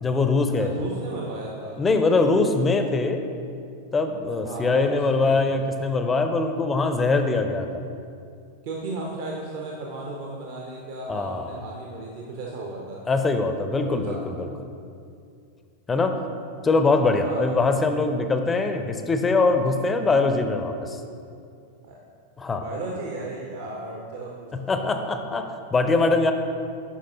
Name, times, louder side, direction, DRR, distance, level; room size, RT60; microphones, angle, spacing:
voice 1, 0.0-0.7 1.8-3.2 3.9-7.8 11.1-11.6 13.1-14.5 15.9-16.1 16.6-21.0 22.4-22.6 24.7-26.3, left 3 dB, 15° left, 6 dB, 0.5 m, -22 dB
voice 2, 0.6-1.8 4.4-5.5 8.6-13.0 13.8-14.2 16.5-16.7 17.2-17.6 21.8-22.0 22.6-24.8, right 2 dB, 50° right, -2 dB, 0.7 m, -35 dB
8.4 x 5.2 x 2.8 m, 2.4 s
figure-of-eight pair, 90°, 0 cm